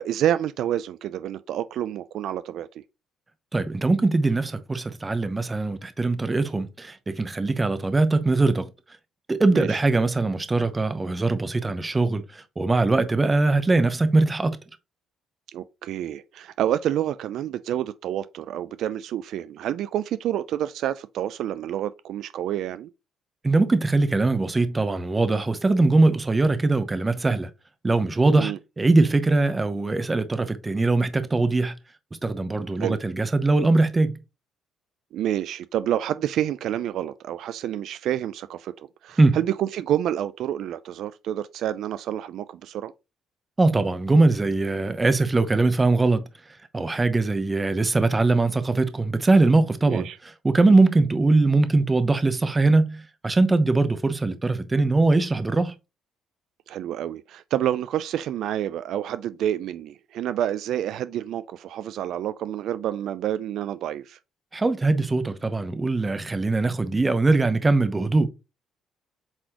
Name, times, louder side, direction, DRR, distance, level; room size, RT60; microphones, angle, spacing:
voice 1, 0.0-2.8 9.5-9.8 15.5-22.9 28.4-28.6 32.8-33.0 35.1-42.9 49.9-50.2 56.7-64.2, right 11 dB, 70° right, 0.4 m, -28 dB
voice 2, 3.5-8.7 9.3-14.6 23.4-27.5 27.8-31.7 32.2-34.2 39.2-39.4 43.6-46.2 46.7-50.1 50.4-55.7 64.5-68.3, right 3 dB, 15° right, 0.9 m, -21 dB
7.9 x 4.1 x 3.0 m
cardioid pair, 125°, 0 cm